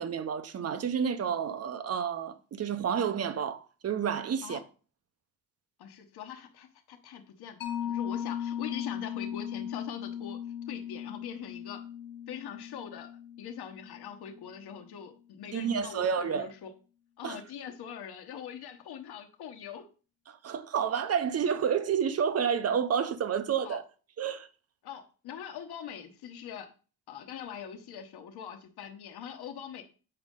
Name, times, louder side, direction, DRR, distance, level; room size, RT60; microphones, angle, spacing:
voice 1, 0.0-4.6 15.5-16.5 17.2-17.4 20.3-23.8 24.2-24.5, right 7 dB, 40° right, 0.7 m, -30 dB
voice 2, 5.8-10.4 10.7-11.8 12.3-13.1 13.4-16.7 17.2-19.9 23.6-23.8 24.8-26.7 27.1-29.8, left 8 dB, 90° left, 1.1 m, -42 dB
Mallet percussion, 7.6-14.7, left 9 dB, 65° left, 1.0 m, -38 dB
7.8 x 5.2 x 3.7 m
cardioid pair, 125°, 37 cm